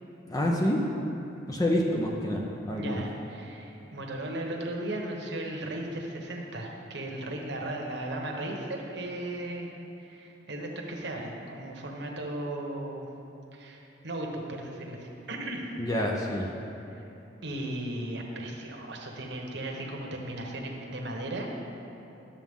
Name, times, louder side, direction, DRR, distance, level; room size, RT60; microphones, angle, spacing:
voice 1, 0.3-0.8 1.5-3.0 15.8-16.5, left 1 dB, 20° left, -1 dB, 0.6 m, -27 dB
voice 2, 2.8-9.7 10.0-13.1 13.5-15.7 16.9-17.0 17.4-21.5, right 1 dB, 70° right, 0 dB, 1.1 m, -36 dB
11.5 x 7.1 x 3.7 m, 3.0 s
head